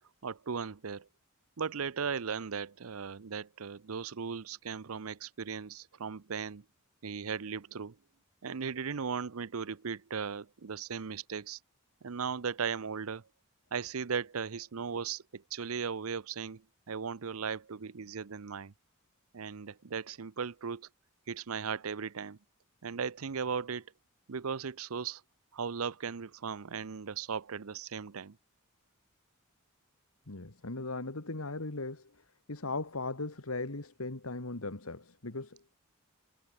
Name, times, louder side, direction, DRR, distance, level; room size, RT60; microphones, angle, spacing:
voice 1, 0.2-1.1 1.6-6.6 7.0-8.0 8.4-11.6 12.0-13.2 13.7-18.7 19.3-20.9 21.3-22.4 22.8-23.9 24.3-25.2 25.5-28.4, right 6 dB, 85° right, 0.7 m, -37 dB
voice 2, 30.3-32.2 32.5-35.7, left 3 dB, 85° left, 2.1 m, -38 dB
head